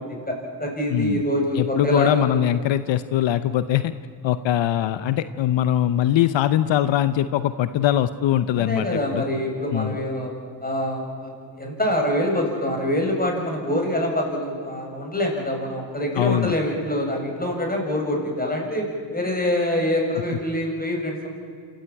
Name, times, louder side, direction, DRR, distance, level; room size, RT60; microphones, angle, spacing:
voice 1, 0.0-2.3 8.7-10.3 10.6-18.9 19.1-21.3, left 1 dB, 20° left, 1 dB, 7.2 m, -25 dB
voice 2, 0.9-1.2 1.6-3.9 4.2-9.2 9.7-10.0 16.2-16.5, left 11 dB, 80° left, 13 dB, 0.8 m, -22 dB
27.0 x 14.5 x 9.0 m, 2.4 s
cardioid pair, 60°, 44 cm